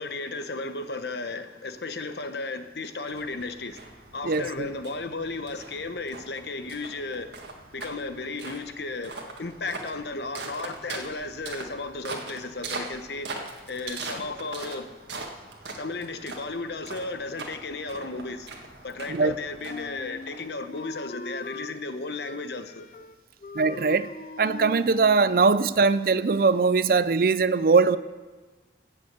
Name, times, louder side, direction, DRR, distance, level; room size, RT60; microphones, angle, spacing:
voice 1, 0.0-3.8 4.1-7.4 7.7-9.1 9.4-13.3 13.7-14.9 15.8-18.5 18.8-22.9, left 3 dB, 70° left, 9 dB, 1.0 m, -34 dB
sound 1, 3.1-20.8, right 3 dB, 80° right, 1.6 m, -41 dB
voice 2, 4.2-4.7 19.1-19.3 23.5-24.1 24.4-28.0, right 4 dB, 55° right, 15 dB, 0.4 m, -21 dB
Wind instrument woodwind instrument, 19.6-21.7 22.1-23.2 23.4-25.6, left 2 dB, 45° left, 0.5 m, -41 dB
13.5 x 7.0 x 8.2 m, 1.3 s
head